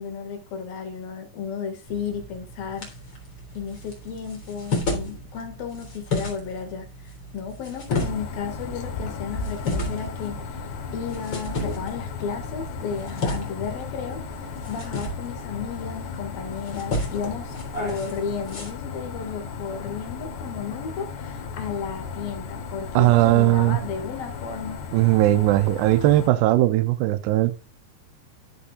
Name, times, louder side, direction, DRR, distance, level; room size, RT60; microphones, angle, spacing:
voice 1, 0.0-2.9 3.5-10.7 10.9-14.2 14.7-24.8, left 6 dB, 65° left, 3.7 m, -33 dB
sound 1, 1.9-18.7, left 2 dB, 30° left, 3.8 m, -34 dB
sound 2, 7.9-26.3, left 5 dB, 90° left, 3.8 m, -35 dB
voice 2, 23.0-23.8 24.9-27.5, right 16 dB, 85° right, 2.8 m, -19 dB
15.0 x 7.0 x 2.5 m
omnidirectional pair, 4.7 m